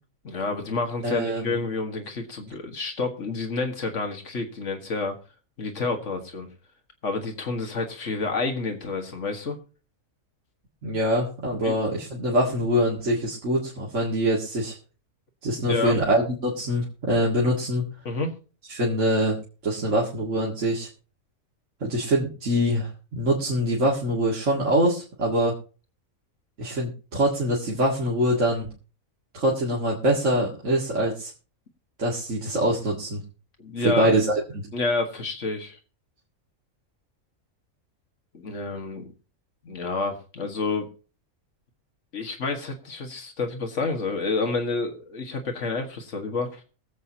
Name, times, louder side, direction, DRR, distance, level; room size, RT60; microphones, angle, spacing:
voice 1, 0.2-5.2 5.6-6.5 7.0-9.6 11.6-11.8 15.7-16.0 18.1-18.3 33.6-34.1 34.7-35.8 38.3-39.1 39.6-40.9 42.1-46.6, left 3 dB, 60° left, 5 dB, 2.0 m, -29 dB
voice 2, 1.0-1.5 10.8-14.8 15.4-17.9 18.7-19.4 19.6-20.9 21.8-25.6 26.6-28.7 29.3-31.3 32.0-33.2 33.8-34.3 34.5-34.7, right 1 dB, 60° right, -4 dB, 2.3 m, -24 dB
23.0 x 7.8 x 2.9 m, 0.36 s
omnidirectional pair, 1.4 m